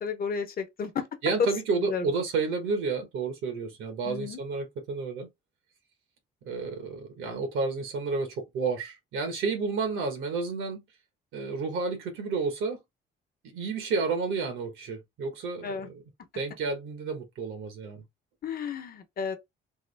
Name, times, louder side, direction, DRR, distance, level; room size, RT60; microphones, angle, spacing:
voice 1, 0.0-1.1 1.8-2.0 4.0-4.4 15.6-15.9 18.4-19.4, left 6 dB, 50° left, 0.9 m, -33 dB
voice 2, 1.2-5.3 6.4-10.8 11.3-12.8 13.5-16.0 16.3-18.0, right 4 dB, 90° right, 1.3 m, -31 dB
3.5 x 2.0 x 3.3 m
cardioid pair, 90°, 20 cm